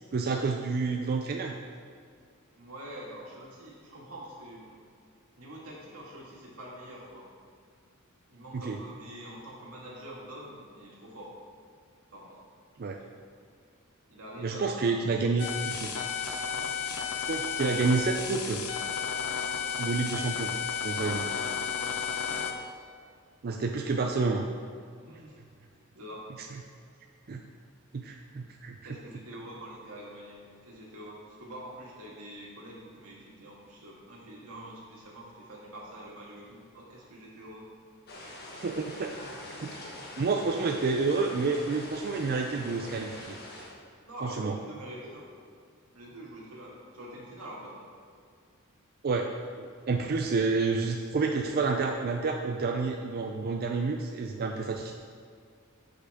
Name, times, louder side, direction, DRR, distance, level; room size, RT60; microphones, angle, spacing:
voice 1, 0.1-1.5 8.6-8.8 12.8-13.0 14.4-15.9 17.1-18.6 19.8-20.5 20.8-21.2 23.4-24.5 27.3-27.4 27.9-28.8 38.6-39.1 39.6-39.9 40.2-43.4 44.2-44.5 49.0-49.3 49.5-54.9, right 4 dB, 45° right, 2 dB, 0.5 m, -29 dB
voice 2, 2.6-4.8 5.4-7.3 8.3-11.4 12.1-12.4 12.9-13.2 14.1-15.3 16.5-16.7 19.5-19.7 20.9-21.3 21.8-22.6 25.0-25.4 25.9-26.3 28.8-37.7 44.0-45.3 45.9-47.9, right 1 dB, 90° right, -4 dB, 2.1 m, -45 dB
sound 1, 15.4-22.5, left 7 dB, 85° left, 0.7 m, -33 dB
sound 2, 38.1-43.7, left 1 dB, 50° left, 1.4 m, -44 dB
10.0 x 5.7 x 3.5 m, 2.2 s
head